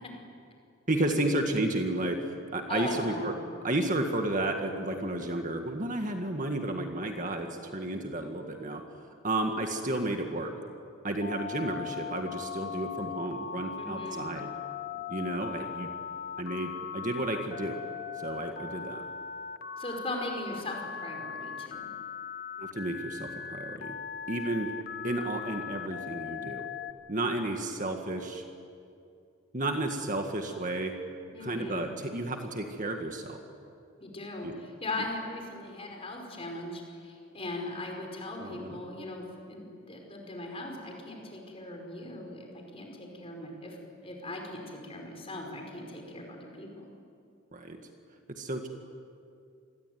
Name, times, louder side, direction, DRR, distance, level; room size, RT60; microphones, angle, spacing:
voice 1, 0.9-3.4 3.6-8.8 9.2-10.5 11.0-14.5 15.1-15.9 16.4-17.8 18.2-19.0 22.6-24.0 24.3-24.8 25.0-26.7 27.1-28.4 29.5-31.0 31.4-33.4 34.4-34.6 38.4-38.8 47.5-47.8 48.4-48.7, right 1 dB, 35° right, 4 dB, 1.9 m, -32 dB
voice 2, 2.7-3.3 13.7-14.3 19.8-21.9 31.3-31.9 34.0-34.5 34.8-43.8 44.0-46.9, left 2 dB, 25° left, 2 dB, 5.3 m, -39 dB
Telephone, 11.2-26.9, left 7 dB, 45° left, 1.1 m, -39 dB
28.0 x 21.5 x 9.5 m, 2.5 s
head